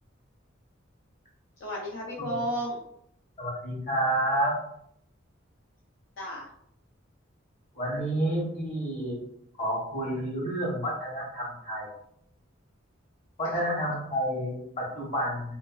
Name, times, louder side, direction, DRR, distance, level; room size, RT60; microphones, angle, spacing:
voice 1, 1.6-2.9 6.2-6.5 8.1-8.4 13.4-13.7, equal, 70° left, -3 dB, 0.6 m, -34 dB
voice 2, 3.4-4.6 7.7-9.2 9.6-11.9 13.4-15.6, right 1 dB, 40° left, -3 dB, 1.0 m, -29 dB
3.8 x 2.5 x 2.3 m, 0.71 s
head